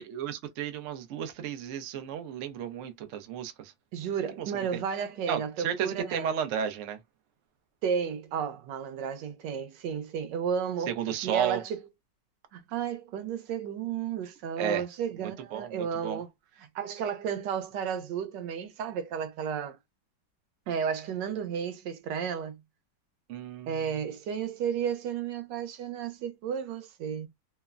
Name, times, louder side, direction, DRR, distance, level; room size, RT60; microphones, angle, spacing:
voice 1, 0.0-3.7 4.4-4.8 5.3-7.0 10.9-11.6 14.6-14.8 15.2-16.2 23.3-23.8, right 9 dB, 65° right, 0.7 m, -33 dB
voice 2, 3.9-6.3 7.8-10.9 11.2-11.8 12.5-16.3 16.6-19.8 20.7-22.6 23.7-27.3, right 7 dB, 90° right, 1.3 m, -33 dB
3.2 x 2.0 x 2.3 m
omnidirectional pair, 1.9 m